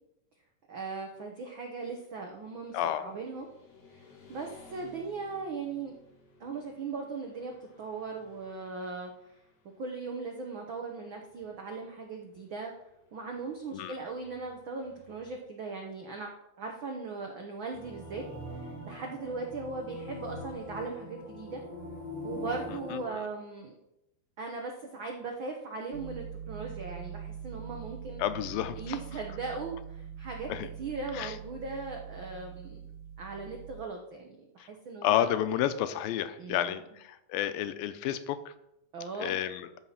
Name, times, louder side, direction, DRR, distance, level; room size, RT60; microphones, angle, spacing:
voice 1, 0.7-3.5 3.9-6.0 6.4-9.1 9.8-12.7 13.1-21.6 22.2-23.8 24.4-28.2 28.8-30.5 30.8-32.8 33.2-35.3 36.4-36.7 38.9-39.3, right 4 dB, 90° right, 2 dB, 1.1 m, -39 dB
Motorcycle / Traffic noise roadway noise, 2.3-15.4, left 3 dB, 70° left, 3.9 m, -59 dB
voice 2, 2.7-3.1 13.7-14.0 22.9-23.2 28.2-29.0 30.5-30.7 31.1-31.3 34.6-34.7 35.0-38.5 39.2-39.7, left 11 dB, 90° left, 11 dB, 2.5 m, -31 dB
sound 1, 17.7-23.0, left 1 dB, 55° left, 6.3 m, -42 dB
sound 2, 25.9-33.9, right 8 dB, 65° right, 1.6 m, -43 dB
13.5 x 5.7 x 5.7 m, 0.85 s
omnidirectional pair, 4.0 m